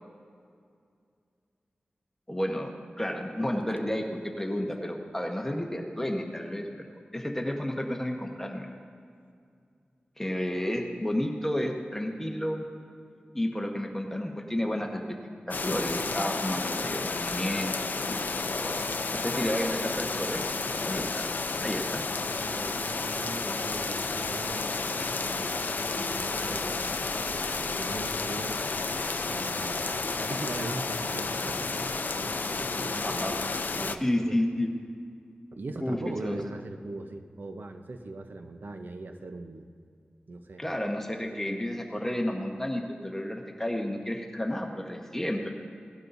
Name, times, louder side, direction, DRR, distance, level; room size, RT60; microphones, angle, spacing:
voice 1, 2.3-6.7 7.1-8.7 10.2-12.7 13.3-15.0 15.5-18.1 18.5-18.8 19.1-21.3 21.6-22.1 33.0-33.4 33.9-34.7 35.8-36.4 40.6-45.5, left 1 dB, 10° left, 1 dB, 1.1 m, -31 dB
sound 1, 15.5-34.0, left 3 dB, 60° left, 0.5 m, -31 dB
voice 2, 22.4-27.0 27.3-28.6 29.3-34.4 35.5-39.7 40.3-40.6, right 2 dB, 70° right, 6 dB, 0.8 m, -40 dB
18.0 x 12.0 x 2.7 m, 2.3 s
wide cardioid pair, 80°, 3 cm